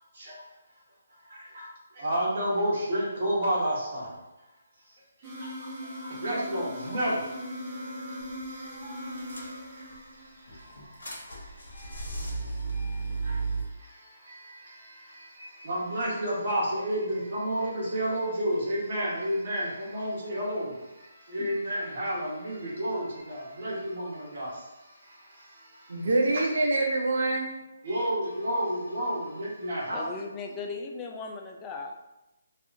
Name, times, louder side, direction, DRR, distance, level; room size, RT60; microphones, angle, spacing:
voice 1, 1.2-4.2 5.4-26.5 27.8-30.1, equal, 55° right, -6 dB, 1.2 m, -32 dB
sound 1, 5.2-10.5, left 1 dB, 25° right, 0.7 m, -39 dB
sound 2, 8.2-8.4 8.7-8.8 9.2-10.0 10.5-13.6, right 3 dB, 85° left, 0.8 m, -34 dB
voice 2, 25.9-27.6, right 2 dB, 70° right, 0 dB, 0.5 m, -25 dB
voice 3, 29.9-32.0, left 4 dB, 20° left, 2 dB, 0.3 m, -37 dB
2.6 x 2.4 x 2.5 m, 0.96 s
hypercardioid pair, 155°, 0 cm